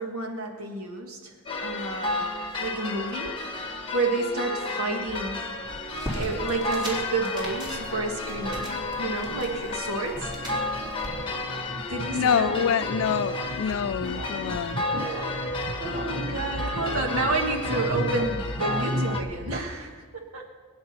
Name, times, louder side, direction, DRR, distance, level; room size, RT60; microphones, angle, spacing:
voice 1, 0.0-1.3 1.6-2.3 2.6-5.4 6.1-8.7 9.0-10.3 11.9-13.0 14.9-15.5 15.8-20.5, right 2 dB, 70° right, 1.7 m, -30 dB
sound 1, 1.5-19.2, left 2 dB, 25° left, 1.3 m, -32 dB
sound 2, 5.7-19.6, right 1 dB, 40° right, 0.8 m, -35 dB
sound 3, 5.9-11.1, equal, 20° right, 3.7 m, -39 dB
voice 2, 12.1-14.8, left 8 dB, 65° left, 0.3 m, -26 dB
23.0 x 9.5 x 4.3 m
head